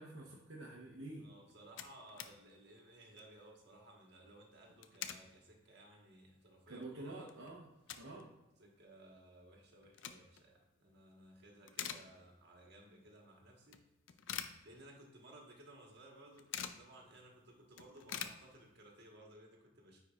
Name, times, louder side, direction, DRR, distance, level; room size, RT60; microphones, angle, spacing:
voice 1, 0.0-1.3 6.7-8.3, right 2 dB, 75° right, -2 dB, 0.8 m, -49 dB
sound 1, 1.2-1.3 1.5-2.4 2.7-2.8 3.1-3.4 4.6-5.3 5.8-5.9 6.4-6.5 6.8-8.2 8.5-8.6 9.6-10.5 11.0-11.3 11.6-12.6 12.9-13.0 13.7-15.2 15.5-15.6 15.8-16.9 17.3-17.4 17.6-19.0, left 9 dB, 70° left, 0.5 m, -46 dB
voice 2, 1.2-7.3 8.6-13.8 14.6-20.0, right 1 dB, 60° right, 0 dB, 1.5 m, -59 dB
9.4 x 4.6 x 2.4 m, 1.0 s
head